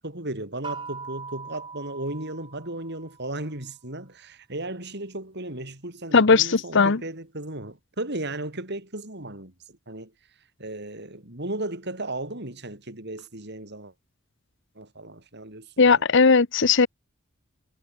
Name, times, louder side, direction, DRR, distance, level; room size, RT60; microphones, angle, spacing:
voice 1, 0.0-9.5 9.9-10.1 10.6-13.9 14.8-16.0, right 2 dB, 55° right, 6.1 m, -35 dB
sound 1, 0.6-3.3, right 5 dB, 25° right, 4.5 m, -40 dB
voice 2, 6.1-7.0 15.8-16.9, left 4 dB, 60° left, 0.9 m, -18 dB
head